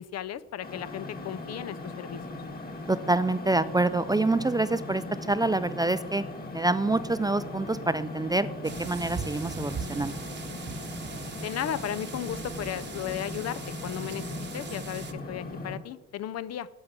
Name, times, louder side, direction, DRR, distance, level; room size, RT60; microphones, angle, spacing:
voice 1, 0.0-2.2 11.4-14.2 14.5-16.7, left 11 dB, 55° left, 15 dB, 0.5 m, -35 dB
sound 1, 0.6-15.8, left 2 dB, 30° left, 1.7 m, -39 dB
voice 2, 2.9-6.2 6.5-10.2, right 2 dB, 15° right, 13 dB, 0.3 m, -26 dB
sound 2, 8.6-15.1, right 6 dB, 35° right, 1.0 m, -40 dB
8.7 x 5.9 x 8.2 m, 1.2 s
cardioid pair, 90°, 30 cm